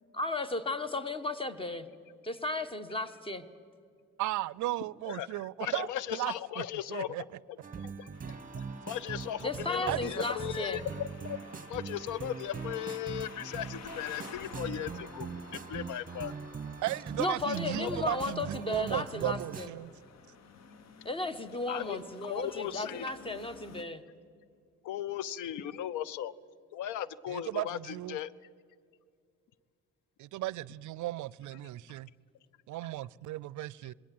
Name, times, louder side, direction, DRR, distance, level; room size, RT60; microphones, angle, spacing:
voice 1, 0.1-1.9 2.2-3.4 9.4-10.8 17.2-19.7 21.0-24.0, left 2 dB, 20° left, 1.2 m, -34 dB
voice 2, 4.2-6.3 6.9-7.2 9.9-10.0 16.8-19.9 27.3-28.2 30.2-32.1 32.7-33.9, right 16 dB, 75° right, 0.4 m, -35 dB
voice 3, 5.6-7.2 7.8-11.4 11.7-16.3 17.8-18.0 21.7-23.1 24.8-26.3 26.7-28.3, left 11 dB, 85° left, 0.6 m, -37 dB
sound 1, 7.6-19.7, right 5 dB, 25° right, 1.0 m, -42 dB
sound 2, 8.1-23.8, left 6 dB, 60° left, 1.2 m, -52 dB
21.0 x 17.5 x 7.7 m
cardioid pair, 90°, 30 cm